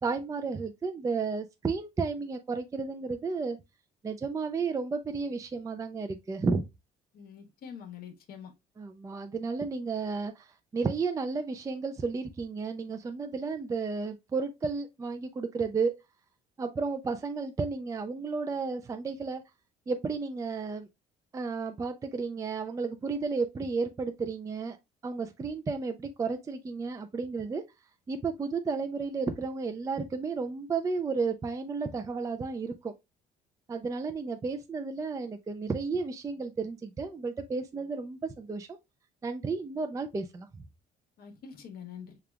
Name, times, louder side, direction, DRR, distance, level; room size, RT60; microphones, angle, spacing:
voice 1, 0.0-3.6 4.0-6.6 8.8-15.9 16.6-19.4 19.9-20.9 21.3-24.8 25.0-27.6 28.1-32.9 33.7-38.8 39.2-40.6, right 4 dB, 20° right, 0.4 m, -32 dB
voice 2, 7.1-8.5 41.2-42.2, left 7 dB, 65° left, 1.1 m, -45 dB
6.6 x 2.3 x 2.2 m
cardioid pair, 110°, 17 cm